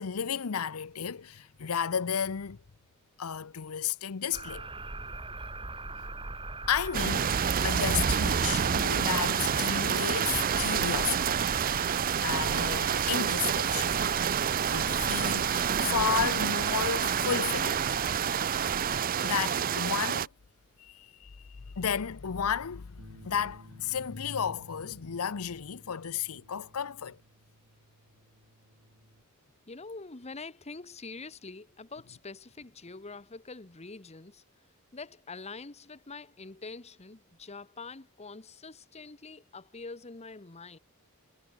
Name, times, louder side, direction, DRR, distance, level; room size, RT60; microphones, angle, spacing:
voice 1, 0.0-2.6 3.2-4.7 6.7-11.4 12.2-13.9 14.7-17.8 19.2-20.3 20.8-21.4 21.8-27.2, left 7 dB, 85° left, 0.7 m, -33 dB
sound 1, 4.3-19.0, right 2 dB, 25° right, 2.5 m, -40 dB
sound 2, 6.9-20.3, right 8 dB, 40° right, 0.5 m, -28 dB
Bass guitar, 23.0-29.2, right 1 dB, 70° right, 5.1 m, -56 dB
voice 2, 29.7-34.4 34.9-40.8, left 3 dB, 30° left, 1.1 m, -45 dB
head